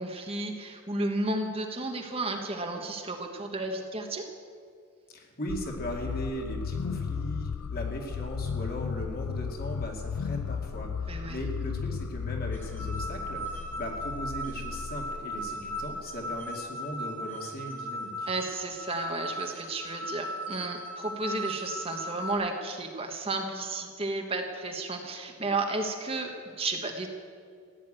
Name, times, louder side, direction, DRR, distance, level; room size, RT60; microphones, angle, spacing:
voice 1, 0.0-4.3 11.1-11.4 18.3-27.1, right 2 dB, 25° right, 3 dB, 1.2 m, -33 dB
voice 2, 5.1-18.3, equal, 45° left, 1 dB, 2.3 m, -38 dB
sound 1, 5.5-16.4, left 6 dB, 90° left, 0.4 m, -35 dB
sound 2, 12.5-22.3, equal, 10° left, 1.8 m, -37 dB
15.0 x 9.5 x 8.9 m, 2.2 s
head